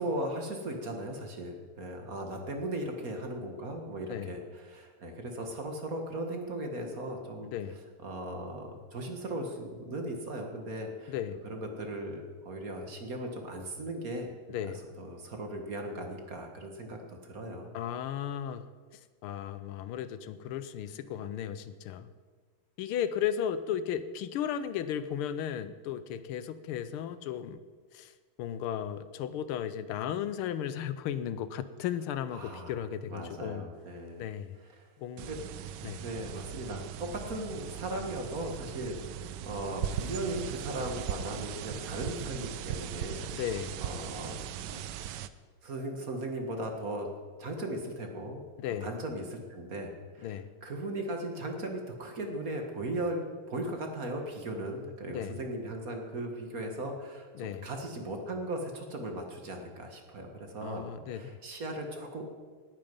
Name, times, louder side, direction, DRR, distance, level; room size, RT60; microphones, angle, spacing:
voice 1, 0.0-7.5 8.0-11.1 11.4-14.3 15.0-17.7 32.3-34.2 34.7-34.9 35.3-35.4 36.0-43.2 43.8-44.4 44.7-44.8 45.1-45.2 45.6-47.1 47.4-48.4 48.8-62.2, right 1 dB, 45° right, 3 dB, 1.9 m, -37 dB
voice 2, 7.5-7.8 11.1-11.4 14.5-14.8 17.7-18.7 19.2-22.1 22.8-27.6 27.9-28.1 28.4-33.7 34.2-34.5 35.0-35.3 35.8-36.0 43.3-43.8 48.6-48.9 50.2-50.5 55.1-55.4 57.3-57.7 60.6-61.4, left 9 dB, 85° left, 13 dB, 1.6 m, -35 dB
sound 1, 35.2-45.3, right 10 dB, 75° right, 1.1 m, -39 dB
18.5 x 8.9 x 5.4 m, 1.5 s
omnidirectional pair, 2.3 m